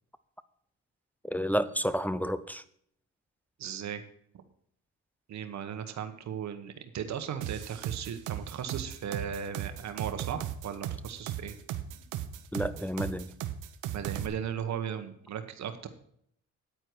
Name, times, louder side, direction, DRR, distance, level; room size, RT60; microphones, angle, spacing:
voice 1, 1.2-2.6 12.5-13.3, equal, 5° left, 12 dB, 0.6 m, -30 dB
voice 2, 3.6-4.0 4.3-4.4 5.3-11.6 13.9-15.9, right 8 dB, 65° right, 8 dB, 1.3 m, -37 dB
sound 1, 7.4-14.3, right 12 dB, 90° right, 0.9 m, -36 dB
9.7 x 9.1 x 4.7 m, 0.68 s
cardioid pair, 90°, 30 cm